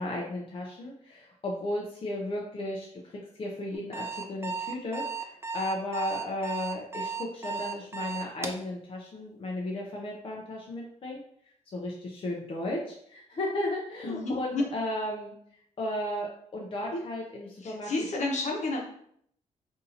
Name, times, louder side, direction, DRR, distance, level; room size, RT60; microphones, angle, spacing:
voice 1, 0.0-11.2 11.7-15.3 15.8-17.9, left 1 dB, 45° left, -1 dB, 0.6 m, -34 dB
Alarm, 3.7-8.6, right 5 dB, 20° right, 0.5 m, -35 dB
voice 2, 14.0-14.6 16.9-17.0 17.6-18.8, left 2 dB, 65° left, 0 dB, 1.0 m, -30 dB
5.2 x 2.7 x 2.8 m, 0.67 s
cardioid pair, 105°, 13 cm